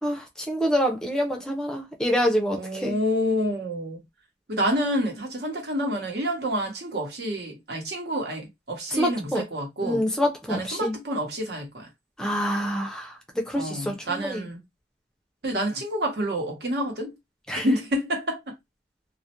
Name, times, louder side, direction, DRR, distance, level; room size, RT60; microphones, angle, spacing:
voice 1, 0.0-2.9 9.0-9.4 9.8-10.9 12.2-14.4 17.5-17.7, equal, 5° left, 0.5 m, -26 dB
voice 2, 2.5-4.0 4.5-10.0 10.5-11.9 13.5-14.6 15.4-17.1 17.6-18.6, equal, 60° right, 1.0 m, -28 dB
2.3 x 2.1 x 2.8 m
head